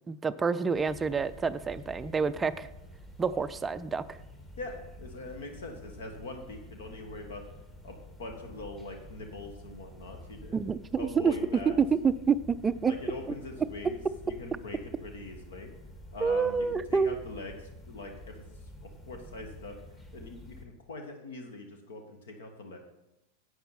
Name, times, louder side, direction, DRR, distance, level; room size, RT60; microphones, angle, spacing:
voice 1, 0.1-2.7 3.2-4.2 10.5-11.3 11.8-12.9 16.2-17.2, right 5 dB, 15° right, 14 dB, 0.4 m, -28 dB
sound 1, 0.7-20.7, left 1 dB, 15° left, 1.5 m, -49 dB
voice 2, 4.6-7.4 7.8-10.6 10.9-11.8 12.9-14.0 14.2-15.7 16.1-17.6 17.9-18.4 18.8-19.8 20.1-22.8, left 2 dB, 60° left, 4 dB, 1.4 m, -42 dB
11.0 x 8.0 x 4.2 m, 0.91 s
figure-of-eight pair, 90°, 0 cm